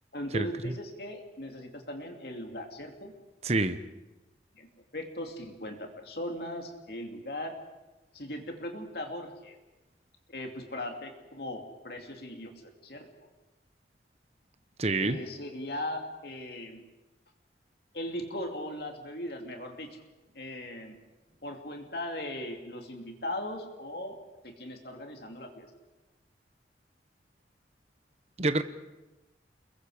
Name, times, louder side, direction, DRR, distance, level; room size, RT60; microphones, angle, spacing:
voice 1, 0.1-3.1 4.5-4.7 4.9-7.6 8.1-9.6 10.3-12.5 12.8-13.3 15.0-16.8 17.9-20.0 20.3-21.0 21.4-25.7, left 1 dB, 60° left, 3 dB, 2.8 m, -38 dB
voice 2, 3.4-3.8 14.8-15.2 28.4-28.6, right 2 dB, 35° right, 11 dB, 1.0 m, -26 dB
29.0 x 22.0 x 5.1 m, 1.1 s
head